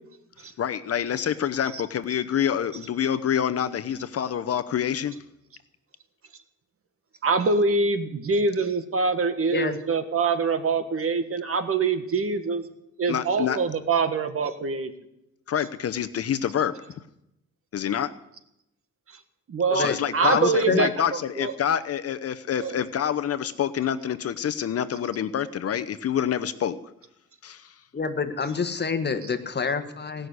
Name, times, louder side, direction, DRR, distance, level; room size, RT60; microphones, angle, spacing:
voice 1, 0.6-5.1 13.1-13.6 15.5-16.7 17.7-18.1 19.7-26.8 27.4-27.7, left 9 dB, 50° left, 10 dB, 0.8 m, -27 dB
voice 2, 7.2-12.6 13.0-14.9 19.5-19.9 20.1-21.5 22.6-22.8, right 4 dB, 45° right, 9 dB, 1.6 m, -24 dB
voice 3, 19.7-20.9 27.9-30.3, left 5 dB, 35° left, 8 dB, 1.5 m, -27 dB
18.0 x 6.5 x 9.5 m, 0.83 s
cardioid pair, 90°, 30 cm